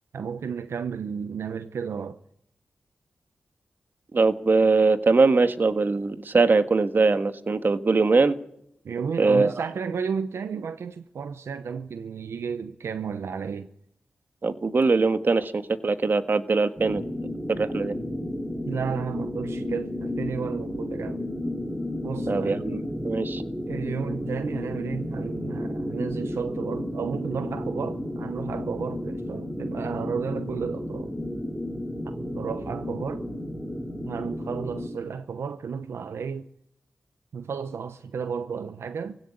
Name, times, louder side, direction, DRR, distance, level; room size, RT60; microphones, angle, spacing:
voice 1, 0.1-2.2 8.8-13.7 18.6-21.2 22.0-22.7 23.7-31.1 32.0-33.2 34.0-36.5 37.3-39.2, right 6 dB, 85° right, 0.8 m, -32 dB
voice 2, 4.1-8.3 9.2-9.5 14.4-17.0 17.5-17.9 22.3-23.4, right 3 dB, 50° right, 1.6 m, -22 dB
sound 1, 16.8-34.9, left 1 dB, 15° right, 4.9 m, -32 dB
19.0 x 16.5 x 9.8 m
cardioid pair, 65°, 4 cm